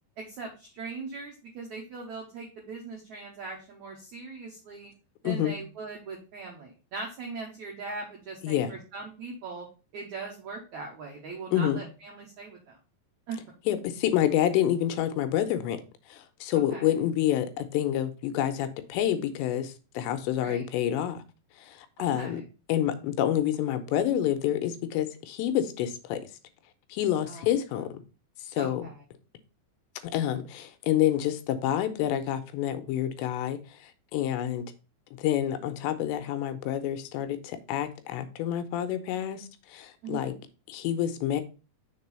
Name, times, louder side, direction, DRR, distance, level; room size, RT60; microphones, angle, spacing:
voice 1, 0.2-4.9 5.2-9.7 9.9-12.8 13.3-13.4 16.7-16.8 20.4-20.7 22.0-22.4 27.3-27.5 28.6-29.0 40.0-40.4, right 4 dB, 75° right, 0 dB, 1.7 m, -40 dB
voice 2, 5.2-5.6 8.4-8.7 11.5-11.8 13.7-15.8 16.1-21.2 21.6-22.4 22.7-26.2 26.9-28.0 28.5-28.9 30.0-34.6 35.2-40.3 40.7-41.4, left 11 dB, 85° left, 10 dB, 2.9 m, -28 dB
6.7 x 3.8 x 5.5 m, 0.33 s
omnidirectional pair, 5.2 m